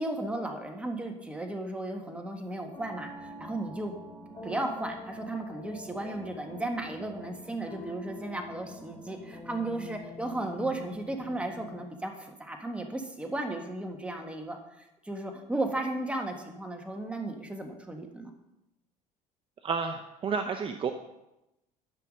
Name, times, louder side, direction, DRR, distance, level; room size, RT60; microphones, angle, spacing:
voice 1, 0.0-3.9 4.4-18.3, right 2 dB, 10° right, 3 dB, 1.5 m, -35 dB
sound 1, 2.7-11.8, left 1 dB, 25° left, 2.7 m, -45 dB
voice 2, 19.6-20.9, right 5 dB, 35° right, 5 dB, 0.7 m, -31 dB
10.5 x 5.7 x 6.5 m, 0.92 s
cardioid pair, 110°, 15 cm